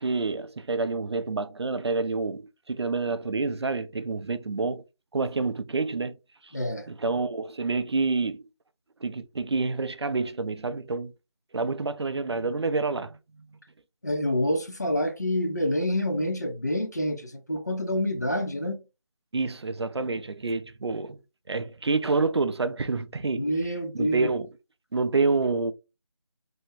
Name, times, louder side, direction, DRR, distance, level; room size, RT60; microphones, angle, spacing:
voice 1, 0.0-4.8 5.1-6.1 6.4-6.5 6.9-8.4 9.0-11.1 11.5-13.2 19.3-21.2 21.5-23.4 24.0-24.5 24.9-25.7, right 3 dB, 60° right, 0.4 m, -28 dB
voice 2, 6.5-6.9 14.0-18.8 23.4-24.4, left 1 dB, 35° left, 0.4 m, -27 dB
3.4 x 2.1 x 3.1 m
figure-of-eight pair, 170°, 16 cm